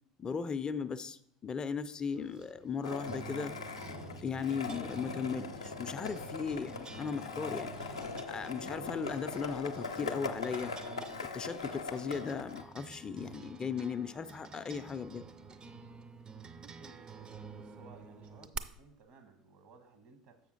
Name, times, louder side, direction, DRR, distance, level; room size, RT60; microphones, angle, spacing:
voice 1, 0.2-3.5 4.2-8.0 8.3-10.7 11.3-15.2, left 6 dB, 30° left, 12 dB, 0.4 m, -37 dB
sound 1, 2.1-18.6, right 5 dB, 30° right, 0.5 m, -49 dB
Skateboard, 2.8-12.6, left 4 dB, 85° left, 0.5 m, -41 dB
voice 2, 16.8-20.4, right 4 dB, 55° right, 6 dB, 1.2 m, -58 dB
7.2 x 5.7 x 3.9 m, 0.73 s
figure-of-eight pair, 70°, 3 cm